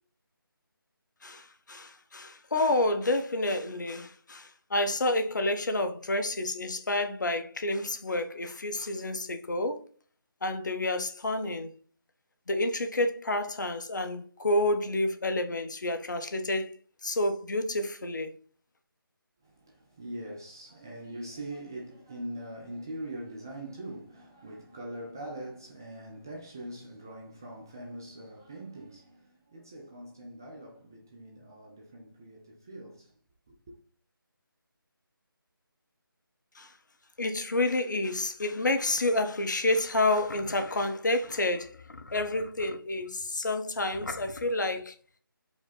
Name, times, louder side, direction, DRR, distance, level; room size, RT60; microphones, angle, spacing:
voice 1, 1.2-9.8 10.4-11.7 12.5-16.8 17.0-18.3 36.6-36.7 37.2-44.9, left 2 dB, 55° left, 0.8 m, -29 dB
voice 2, 19.4-33.1 33.5-33.7, right 1 dB, 10° right, 0.3 m, -42 dB
4.9 x 2.2 x 4.0 m
figure-of-eight pair, 155°, 12 cm